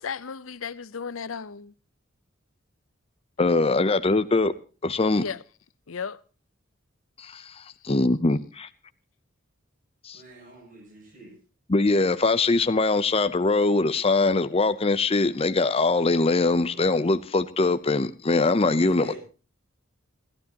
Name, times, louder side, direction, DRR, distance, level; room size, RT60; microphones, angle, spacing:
voice 1, 0.0-1.7 5.1-5.4 5.9-6.2, left 6 dB, 90° left, 0.7 m, -34 dB
voice 2, 3.4-4.5 4.8-5.2 7.2-8.7 10.0-10.2 11.7-19.2, left 3 dB, 30° left, 0.7 m, -22 dB
voice 3, 10.1-11.3 18.9-19.2, right 2 dB, 40° right, 8.0 m, -44 dB
28.5 x 12.0 x 2.9 m
head